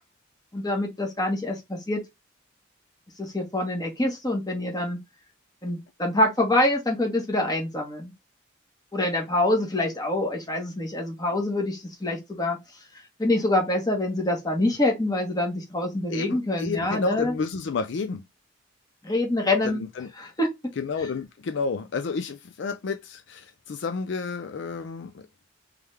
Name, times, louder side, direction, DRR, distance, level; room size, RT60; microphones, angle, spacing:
voice 1, 0.5-2.0 3.2-5.0 5.6-8.1 8.9-12.6 13.2-17.3 19.0-19.8 20.2-20.5, left 1 dB, 20° left, 1.3 m, -25 dB
voice 2, 16.1-18.2 19.6-20.1 20.8-25.3, left 4 dB, 60° left, 0.4 m, -31 dB
3.3 x 3.3 x 3.3 m
head